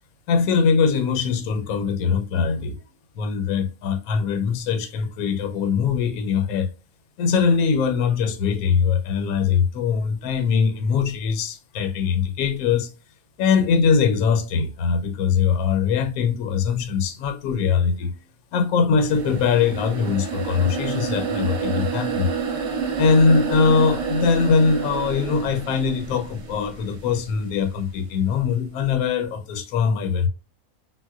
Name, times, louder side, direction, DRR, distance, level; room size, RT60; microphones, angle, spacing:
voice 1, 0.3-2.8 3.2-6.7 7.2-12.9 13.4-18.1 18.5-22.3 23.0-30.3, left 5 dB, 75° left, 1.0 m, -21 dB
sound 1, 19.1-27.1, right 5 dB, 55° right, 0.9 m, -28 dB
3.9 x 2.1 x 2.3 m
omnidirectional pair, 1.6 m